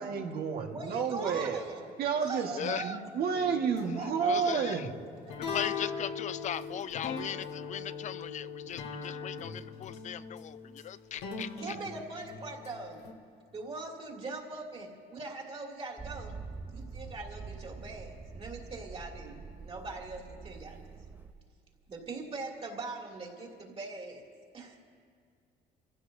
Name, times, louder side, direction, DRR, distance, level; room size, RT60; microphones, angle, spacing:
voice 1, 0.0-1.6 2.0-5.0, right 6 dB, 65° right, 3 dB, 1.6 m, -31 dB
voice 2, 0.7-1.9 2.1-3.1 3.9-4.6 5.3-5.4 11.6-13.0 13.5-16.4 16.7-20.8 21.9-24.3 24.5-24.8, right 3 dB, 35° right, -1 dB, 2.7 m, -41 dB
voice 3, 2.5-2.9 4.2-4.9 5.5-11.8, left 10 dB, 45° left, 16 dB, 0.4 m, -38 dB
sound 1, 3.3-13.1, left 5 dB, 80° left, 1.6 m, -40 dB
Motor vehicle (road), 16.0-21.3, right 4 dB, 10° right, 0.7 m, -45 dB
28.5 x 15.5 x 2.7 m, 2.2 s
cardioid pair, 110°, 17 cm